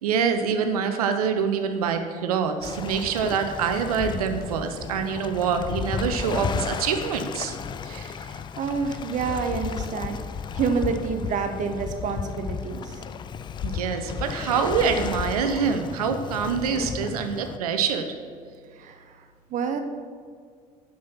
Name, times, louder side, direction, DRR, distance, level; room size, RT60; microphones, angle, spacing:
voice 1, 0.0-7.6 7.8-8.2 13.6-18.1, right 6 dB, 70° right, 7 dB, 0.7 m, -25 dB
Waves surf, 2.6-17.6, left 7 dB, 25° left, 0.4 m, -33 dB
voice 2, 8.6-10.2 10.5-13.0 18.8-19.2 19.5-19.8, right 5 dB, 40° right, 7 dB, 0.8 m, -28 dB
7.3 x 6.1 x 5.6 m, 2.1 s
figure-of-eight pair, 60°, 20 cm